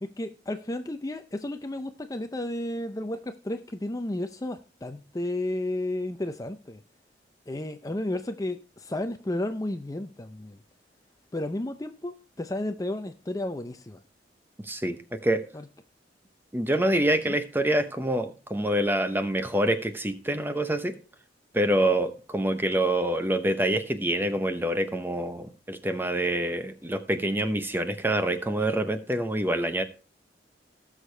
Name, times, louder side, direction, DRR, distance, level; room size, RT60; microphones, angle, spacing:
voice 1, 0.0-6.8 7.5-10.6 11.3-14.0 15.5-15.6 17.3-17.4, left 1 dB, 20° left, 9 dB, 0.5 m, -32 dB
voice 2, 14.6-15.4 16.5-21.0 21.5-29.8, right 1 dB, 10° right, 9 dB, 0.8 m, -26 dB
18.0 x 6.5 x 3.3 m, 0.35 s
head